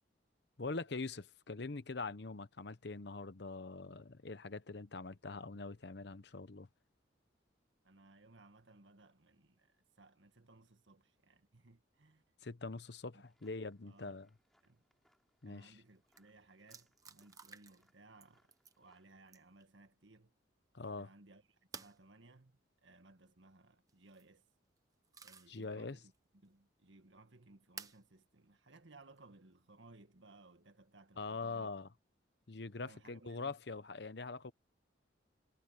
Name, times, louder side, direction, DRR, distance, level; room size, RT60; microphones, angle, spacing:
voice 1, 0.6-6.7 12.4-14.3 15.4-15.8 20.7-21.1 25.5-26.0 31.2-31.9 32.5-34.5, left 3 dB, 60° left, 0.9 m, -43 dB
voice 2, 7.8-12.2 13.1-13.2 13.8-14.2 14.6-14.8 15.4-18.5 18.8-20.3 21.0-24.5 25.2-31.8 32.8-33.6, right 2 dB, 75° right, 1.8 m, -62 dB
sound 1, 13.2-19.1, equal, ahead, 7.0 m, -78 dB
sound 2, 15.8-15.9 16.1-16.2 16.7-17.9 18.2-18.8 19.3-19.6 21.7-22.0 23.9-24.3 24.8-25.6 26.1-26.2 27.8-28.0 29.2-29.3 31.3-31.8, right 5 dB, 20° right, 1.0 m, -53 dB
head